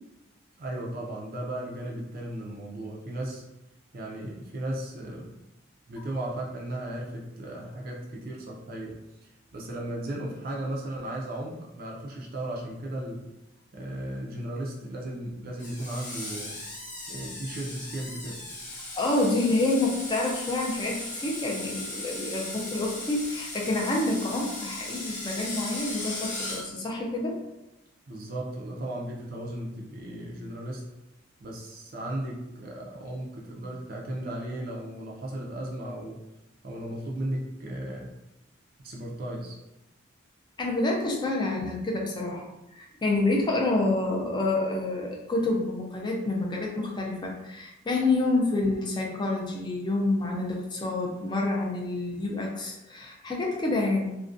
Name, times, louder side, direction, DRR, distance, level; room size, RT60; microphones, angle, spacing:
voice 1, 0.6-3.4 3.9-5.4 5.9-13.3 13.7-16.6 17.1-18.4 28.1-30.9 31.4-36.2 36.6-38.1 38.8-39.6, right 1 dB, 50° right, -2 dB, 0.4 m, -36 dB
Screech, 15.6-26.6, left 2 dB, 40° left, 0.7 m, -37 dB
voice 2, 19.0-27.4 40.6-54.2, left 2 dB, 20° left, -1 dB, 0.4 m, -28 dB
2.4 x 2.1 x 2.5 m, 0.92 s
head